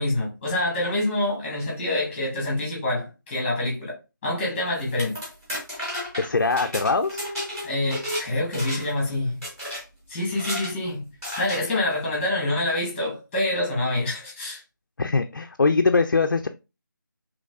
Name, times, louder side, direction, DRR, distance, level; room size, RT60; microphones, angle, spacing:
voice 1, 0.0-5.2 7.6-9.4 10.1-11.1 11.4-14.6, left 1 dB, 10° left, 1.3 m, -26 dB
sound 1, 4.8-8.3 8.5-9.0 9.4-9.8 10.3-10.7 11.2-11.6, equal, 15° right, 1.3 m, -32 dB
voice 2, 6.2-7.3 15.0-16.5, left 4 dB, 60° left, 0.4 m, -22 dB
3.8 x 3.0 x 2.3 m
figure-of-eight pair, 160°, 11 cm